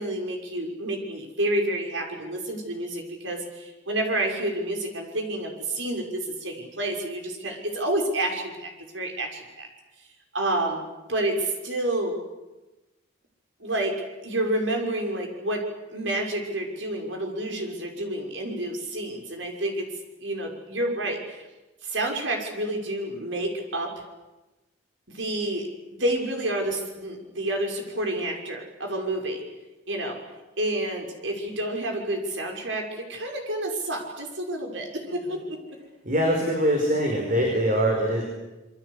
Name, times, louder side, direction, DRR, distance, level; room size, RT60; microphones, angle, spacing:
voice 1, 0.0-9.7 10.3-10.8 11.1-12.1 13.6-13.9 14.2-15.6 15.9-19.8 20.2-21.5 21.8-23.9 25.1-29.4 29.9-30.2 30.6-35.6, right 1 dB, 80° right, 2 dB, 6.2 m, -29 dB
voice 2, 36.0-38.2, equal, 45° right, 1 dB, 5.0 m, -23 dB
27.0 x 24.0 x 8.4 m, 1.1 s
head